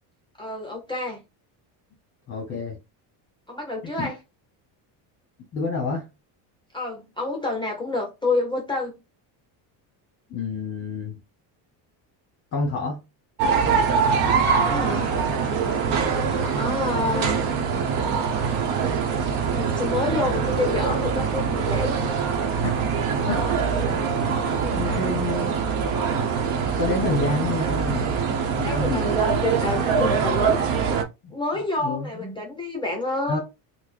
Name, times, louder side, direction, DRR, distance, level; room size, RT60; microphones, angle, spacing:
voice 1, 0.4-1.2 3.5-4.2 6.7-9.0 14.1-15.1 16.0-17.4 19.2-22.0 23.1-23.8 24.4-25.1 28.6-31.0 31.3-33.4, left 2 dB, 10° left, 0.4 m, -29 dB
voice 2, 2.3-2.8 4.0-4.1 5.5-6.1 10.3-11.2 12.5-13.0 22.6-22.8 23.2-23.5 24.3-24.4 24.7-25.6 26.8-28.1 28.6-29.0 31.2-31.4 31.8-32.3 33.3-33.4, left 3 dB, 30° left, 0.9 m, -28 dB
sound 1, 13.4-31.0, right 6 dB, 85° right, 0.8 m, -23 dB
3.9 x 2.1 x 3.1 m
cardioid pair, 150°, 48 cm